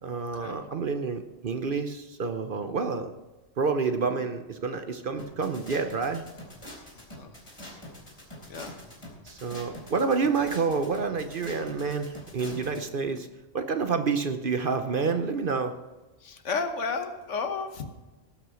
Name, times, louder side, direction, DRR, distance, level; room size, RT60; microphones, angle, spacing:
voice 1, 0.0-3.1 3.6-6.2 9.2-13.3 13.5-15.7, right 5 dB, 50° right, 8 dB, 0.8 m, -28 dB
sound 1, 5.2-12.8, left 1 dB, 25° left, 3.5 m, -44 dB
voice 2, 6.9-7.4 8.5-8.8 16.2-17.9, left 4 dB, 70° left, 7 dB, 1.4 m, -33 dB
18.0 x 6.1 x 6.2 m, 1.1 s
omnidirectional pair, 1.3 m